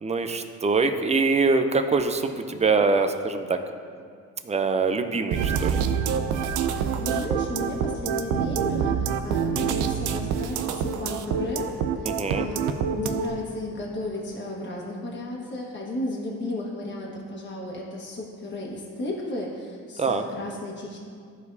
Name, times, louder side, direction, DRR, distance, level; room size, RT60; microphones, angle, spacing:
voice 1, 0.0-3.6 4.4-5.8 12.0-12.4 20.0-20.2, right 4 dB, 20° right, 7 dB, 0.5 m, -24 dB
sound 1, 5.3-13.3, right 7 dB, 90° right, 0.5 m, -26 dB
voice 2, 6.6-21.0, left 1 dB, 35° left, -3 dB, 1.4 m, -34 dB
13.5 x 4.8 x 2.7 m, 2.2 s
cardioid pair, 90°, 30 cm